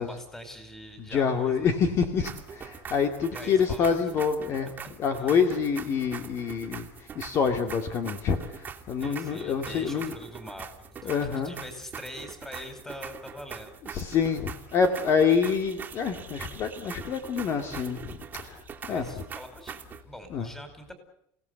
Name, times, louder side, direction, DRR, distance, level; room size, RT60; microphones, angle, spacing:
voice 1, 0.0-1.8 3.3-4.0 4.6-4.7 5.2-5.4 9.0-13.7 18.8-20.9, equal, 5° left, 7 dB, 5.0 m, -44 dB
voice 2, 1.0-10.1 11.0-11.6 13.8-19.2 20.3-20.5, left 6 dB, 40° left, 6 dB, 2.3 m, -27 dB
sound 1, 2.2-20.0, right 7 dB, 25° right, 2.6 m, -43 dB
29.0 x 18.0 x 8.2 m, 0.72 s
cardioid pair, 150°, 7 cm